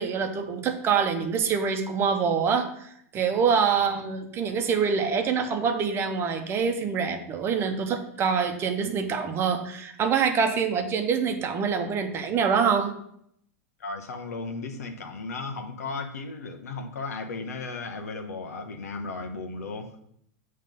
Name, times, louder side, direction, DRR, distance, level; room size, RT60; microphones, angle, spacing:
voice 1, 0.0-2.7 3.1-12.9, right 6 dB, 30° right, 6 dB, 0.9 m, -25 dB
voice 2, 3.7-4.0 13.8-20.0, left 3 dB, 85° left, 4 dB, 1.0 m, -35 dB
7.4 x 3.3 x 5.3 m, 0.70 s
hypercardioid pair, 120°, 8 cm